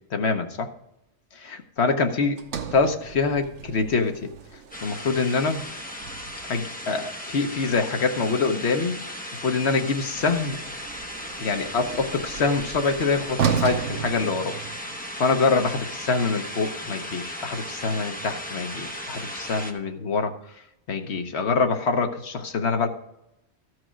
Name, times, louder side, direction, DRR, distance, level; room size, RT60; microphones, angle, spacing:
voice 1, 0.1-0.7 1.3-2.4 2.7-4.3 4.8-5.6 6.5-8.9 9.4-10.6 11.4-14.6 15.2-20.3 20.9-22.9, left 4 dB, 70° left, 5 dB, 1.3 m, -25 dB
Sliding door, 2.4-6.6 10.1-15.1, right 8 dB, 90° right, 1.1 m, -33 dB
sound 1, 4.7-19.7, equal, 10° left, 0.9 m, -36 dB
14.0 x 4.8 x 6.1 m, 0.83 s
omnidirectional pair, 1.2 m